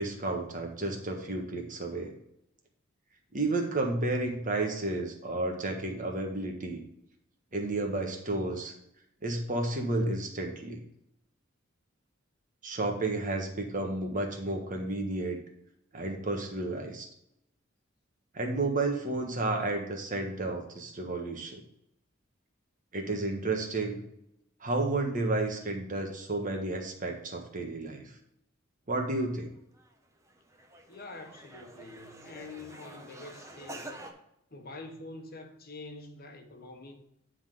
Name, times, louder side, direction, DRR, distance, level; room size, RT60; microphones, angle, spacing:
voice 1, 0.0-2.1 3.3-6.8 7.5-8.7 9.2-10.8 12.6-15.4 15.9-17.1 18.3-21.6 22.9-24.0 24.6-28.1 28.9-29.5, right 2 dB, 40° right, 1.5 m, -32 dB
sound 1, 29.7-29.9 30.2-34.1, right 1 dB, 15° right, 0.9 m, -47 dB
voice 2, 30.9-34.0 34.5-37.0, left 3 dB, 50° left, 1.1 m, -46 dB
10.0 x 3.9 x 4.9 m
head